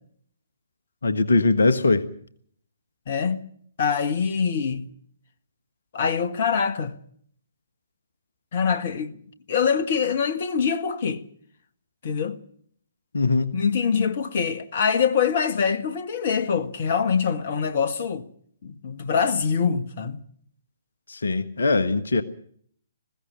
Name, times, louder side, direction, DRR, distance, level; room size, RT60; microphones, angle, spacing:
voice 1, 1.0-2.1 13.1-13.5 21.1-22.2, left 3 dB, 65° left, 1.4 m, -21 dB
voice 2, 3.1-3.4 3.8-4.9 5.9-6.9 8.5-9.2 9.5-11.2 12.0-12.4 13.5-18.3 18.6-20.2, left 6 dB, 45° left, 1.5 m, -24 dB
21.0 x 16.0 x 9.1 m
figure-of-eight pair, 130°, 0 cm